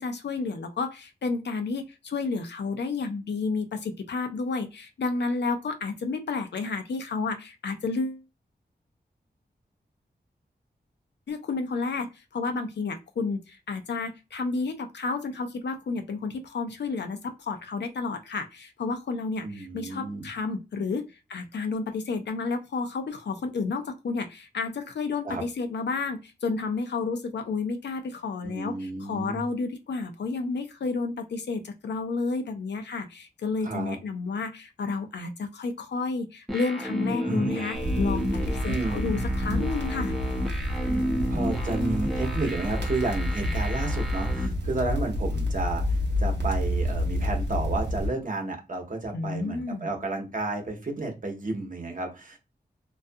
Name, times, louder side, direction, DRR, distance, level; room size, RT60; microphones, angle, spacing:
voice 1, 0.0-8.2 11.3-21.0 21.3-40.1 49.1-49.9, left 4 dB, 85° left, 7 dB, 0.5 m, -31 dB
voice 2, 19.4-20.3 25.2-25.4 28.4-29.4 33.6-34.0 37.2-37.7 38.6-39.0 40.9-52.4, right 2 dB, 50° right, 2 dB, 0.8 m, -32 dB
sound 1, 36.5-44.5, equal, ahead, 0.6 m, -32 dB
sound 2, 37.7-48.1, equal, 85° right, 0.8 m, -29 dB
2.3 x 2.3 x 2.6 m, 0.26 s
wide cardioid pair, 90°, 18 cm